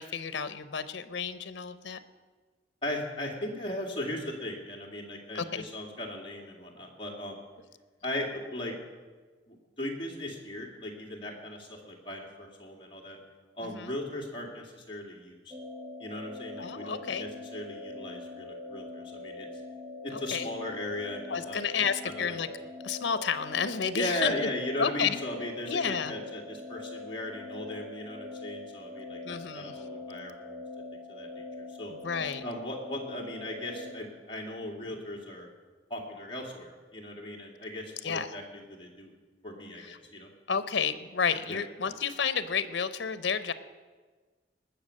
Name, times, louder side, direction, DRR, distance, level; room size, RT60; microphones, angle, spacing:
voice 1, 0.0-2.0 5.3-5.6 13.6-13.9 16.6-17.3 20.1-20.5 21.3-22.5 22.8-24.5 24.8-25.2 25.7-26.1 29.2-29.7 31.9-32.4 38.0-38.3 39.8-40.0 40.5-43.5, left 6 dB, 85° left, 13 dB, 0.7 m, -31 dB
voice 2, 2.8-7.4 8.0-8.7 9.5-13.2 13.5-15.5 16.0-19.5 20.0-22.4 23.9-30.6 31.1-31.9 32.4-35.5 35.9-39.1 39.4-40.3 41.5-41.6, left 1 dB, 30° left, -1 dB, 2.3 m, -38 dB
sound 1, 15.5-33.9, left 2 dB, 20° right, 1.4 m, -43 dB
19.5 x 6.9 x 6.5 m, 1.4 s
head